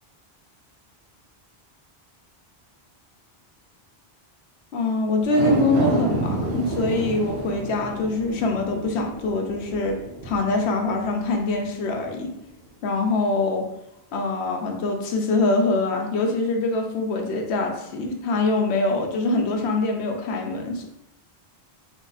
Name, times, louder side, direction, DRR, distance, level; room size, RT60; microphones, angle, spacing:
voice 1, 4.7-12.3 12.8-13.7 14.1-20.8, left 3 dB, 90° left, 3 dB, 0.9 m, -24 dB
sound 1, 5.2-11.7 12.1-12.2, right 2 dB, 80° right, 0.9 m, -30 dB
3.6 x 2.2 x 3.9 m, 0.87 s
omnidirectional pair, 1.1 m